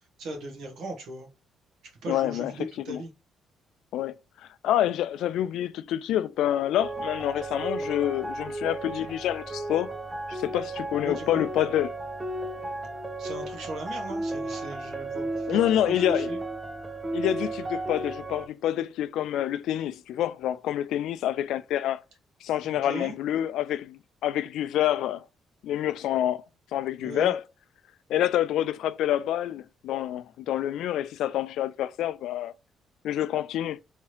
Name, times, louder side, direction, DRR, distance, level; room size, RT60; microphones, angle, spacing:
voice 1, 0.2-1.3 2.0-3.1 11.0-11.4 13.2-16.4 22.6-23.1 27.0-27.3, right 2 dB, 70° right, 1.4 m, -38 dB
voice 2, 2.1-2.5 2.9-3.0 3.9-4.1 4.6-9.9 10.3-11.9 15.5-16.3 17.1-22.0 22.4-25.2 25.6-26.4 26.7-27.4 28.1-32.5 33.0-33.8, left 12 dB, 85° left, 0.3 m, -27 dB
sound 1, 6.8-18.5, right 2 dB, 15° right, 0.4 m, -34 dB
3.5 x 3.2 x 2.9 m
cardioid pair, 160°, 0 cm